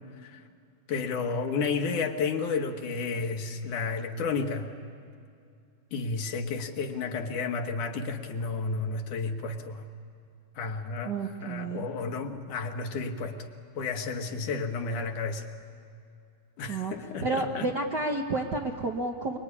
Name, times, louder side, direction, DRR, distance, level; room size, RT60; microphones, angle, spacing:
voice 1, 0.9-4.7 5.9-9.9 10.6-13.5 13.7-15.4 16.6-17.7, left 4 dB, 85° left, 4 dB, 3.0 m, -32 dB
voice 2, 11.0-11.9 16.7-16.9 17.2-19.4, right 3 dB, 55° right, 2 dB, 1.2 m, -30 dB
25.0 x 23.5 x 9.8 m, 2.4 s
omnidirectional pair, 3.4 m